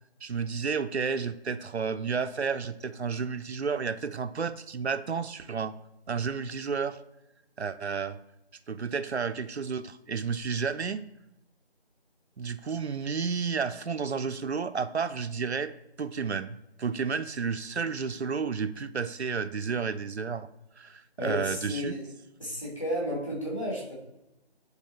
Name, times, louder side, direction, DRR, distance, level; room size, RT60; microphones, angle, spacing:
voice 1, 0.2-5.7 6.1-7.0 7.6-8.2 8.7-11.0 12.4-15.7 16.0-20.5 20.8-21.9, right 5 dB, 80° right, 11 dB, 0.5 m, -31 dB
voice 2, 21.2-22.1 22.4-23.9, left 1 dB, 30° left, -4 dB, 1.6 m, -32 dB
9.6 x 4.0 x 2.8 m, 0.90 s
figure-of-eight pair, 180°, 32 cm